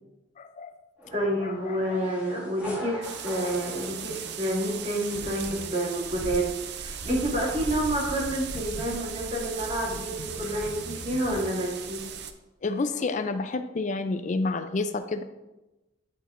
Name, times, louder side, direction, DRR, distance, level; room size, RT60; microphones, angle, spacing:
voice 1, 0.4-0.7 1.4-2.0 12.6-15.2, left 3 dB, 40° left, 10 dB, 0.4 m, -30 dB
sound 1, 1.0-5.0, equal, 5° right, 1.9 m, -42 dB
voice 2, 1.1-12.0, right 1 dB, 35° right, -5 dB, 2.3 m, -29 dB
sound 2, 3.0-12.3, right 6 dB, 55° right, 0.5 m, -37 dB
sound 3, 4.1-4.3 5.1-5.7 7.0-8.9 9.8-11.4, left 1 dB, 90° left, 0.8 m, -42 dB
9.7 x 5.4 x 2.5 m, 1.0 s
head